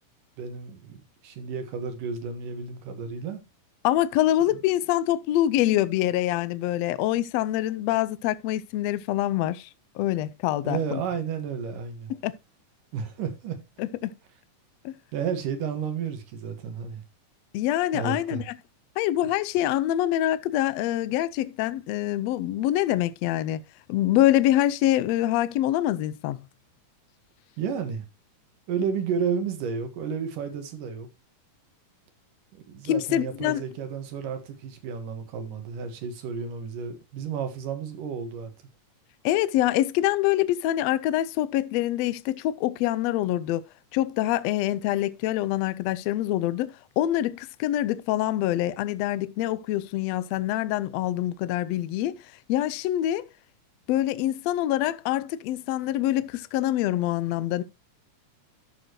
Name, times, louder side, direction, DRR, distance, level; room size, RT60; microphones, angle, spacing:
voice 1, 0.4-3.4 10.6-12.1 12.9-13.6 15.1-17.0 17.9-18.4 27.6-28.0 28.7-31.1 32.5-38.5, right 6 dB, 80° right, 3.2 m, -32 dB
voice 2, 3.8-9.7 10.0-11.0 12.2-12.3 13.8-14.1 14.8-14.9 17.5-18.5 19.0-23.6 23.9-26.4 32.8-33.6 39.2-43.6 43.9-52.2 52.5-53.3 53.9-57.6, left 13 dB, 85° left, 1.5 m, -25 dB
13.5 x 6.7 x 3.0 m
omnidirectional pair, 3.7 m